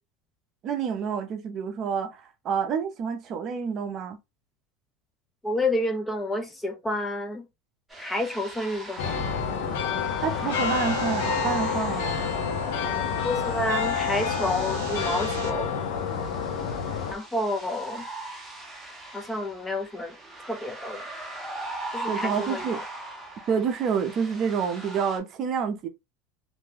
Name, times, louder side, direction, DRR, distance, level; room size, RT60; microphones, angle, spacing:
voice 1, 0.6-4.2 10.2-12.2 22.1-22.8 23.5-25.9, right 6 dB, 40° right, 0.5 m, -28 dB
voice 2, 5.4-7.5 8.0-9.3 13.2-15.8 17.1-18.1 19.1-20.2 20.4-21.0 21.9-22.8, left 1 dB, 10° left, 0.4 m, -29 dB
sound 1, 7.9-25.2, right 2 dB, 10° right, 0.8 m, -39 dB
sound 2, 9.0-17.1, left 7 dB, 70° left, 0.6 m, -28 dB
sound 3, 10.5-15.5, right 4 dB, 90° right, 0.5 m, -39 dB
2.6 x 2.1 x 3.2 m
supercardioid pair, 140°, 0 cm